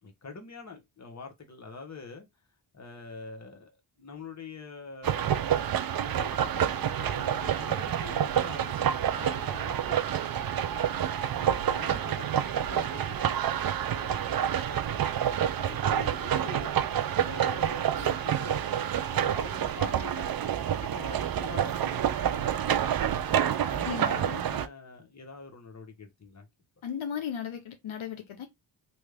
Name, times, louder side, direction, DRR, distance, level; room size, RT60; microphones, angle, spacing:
voice 1, 0.0-2.3 2.7-3.7 4.0-5.5 5.9-10.9 11.4-16.8 17.2-18.8 19.1-20.3 20.6-23.1 23.7-26.5, left 4 dB, 35° left, 1.2 m, -45 dB
sound 1, 5.0-24.7, right 9 dB, 50° right, 0.5 m, -28 dB
voice 2, 23.8-24.4 26.8-28.5, left 8 dB, 70° left, 0.8 m, -36 dB
3.1 x 2.4 x 3.4 m
cardioid pair, 65°, 49 cm